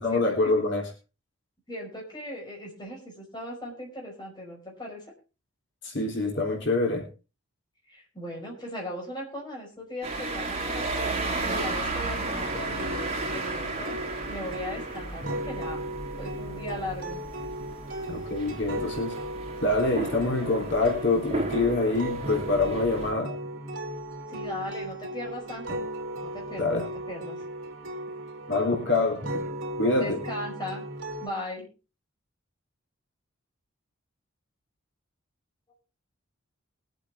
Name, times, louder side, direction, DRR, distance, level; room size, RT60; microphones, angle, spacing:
voice 1, 0.0-0.9 5.8-7.0 18.1-19.1 19.6-23.3 26.6-26.8 28.5-29.5 29.8-30.2, left 2 dB, 60° left, -1 dB, 3.5 m, -25 dB
voice 2, 1.7-5.0 7.9-14.0 14.3-15.8 16.1-17.2 24.3-25.9 26.2-27.4 30.0-30.8 31.2-31.7, left 1 dB, 20° left, -1 dB, 5.2 m, -38 dB
sound 1, 10.0-23.1, right 2 dB, 30° right, 4.0 m, -34 dB
sound 2, 12.4-31.3, right 1 dB, 65° right, 3.2 m, -36 dB
22.5 x 8.3 x 3.6 m, 0.32 s
head